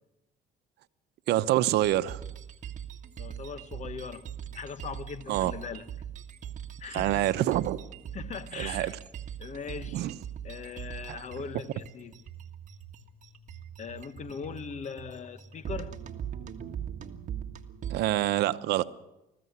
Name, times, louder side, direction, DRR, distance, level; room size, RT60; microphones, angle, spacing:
voice 1, 1.3-2.2 5.3-5.5 6.9-7.8 8.6-8.9 9.9-10.1 11.1-11.2 17.9-18.8, right 14 dB, 80° right, 0.9 m, -26 dB
sound 1, 1.8-18.0, right 9 dB, 45° right, 1.7 m, -41 dB
voice 2, 3.2-5.8 6.8-7.3 8.1-9.0 9.4-10.1 10.4-12.2 13.8-16.0, left 6 dB, 45° left, 1.3 m, -40 dB
20.5 x 15.0 x 9.6 m
cardioid pair, 110°, 17 cm